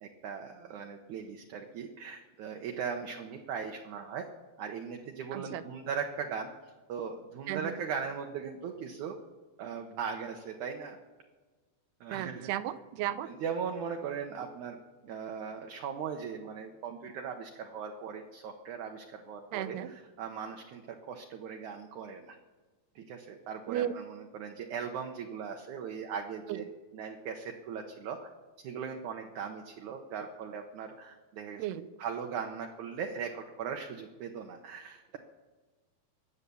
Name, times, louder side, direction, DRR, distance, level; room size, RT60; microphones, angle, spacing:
voice 1, 0.0-4.3 4.6-6.5 6.9-9.2 9.6-11.0 12.0-12.5 13.3-14.8 15.0-22.4 23.0-26.6 26.9-28.3 28.6-31.7 32.0-35.2, right 6 dB, 70° right, 3 dB, 1.9 m, -39 dB
voice 2, 5.3-5.6 7.5-7.7 12.1-13.3 19.5-19.9 23.7-23.9 26.5-26.6 31.6-31.9, right 12 dB, 90° right, 13 dB, 2.8 m, -34 dB
22.5 x 8.3 x 6.9 m, 1.3 s
omnidirectional pair, 4.5 m